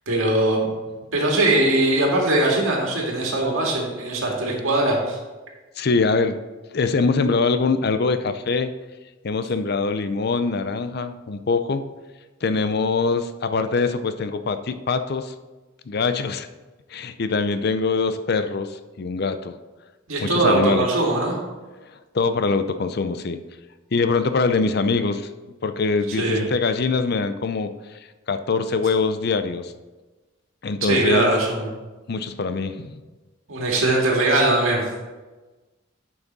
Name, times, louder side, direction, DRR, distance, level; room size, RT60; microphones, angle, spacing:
voice 1, 0.1-0.7 1.1-5.2 20.1-21.4 26.1-26.5 30.8-31.7 33.5-34.8, right 2 dB, 80° right, -1 dB, 2.0 m, -21 dB
voice 2, 5.8-6.4 6.7-8.7 9.2-11.8 12.4-15.3 15.9-16.5 16.9-19.5 20.2-20.9 22.1-23.4 23.9-25.3 25.6-27.7 28.3-29.7 30.6-31.3 32.1-33.0, left 4 dB, 50° left, 10 dB, 0.5 m, -23 dB
9.2 x 5.9 x 4.1 m, 1.2 s
head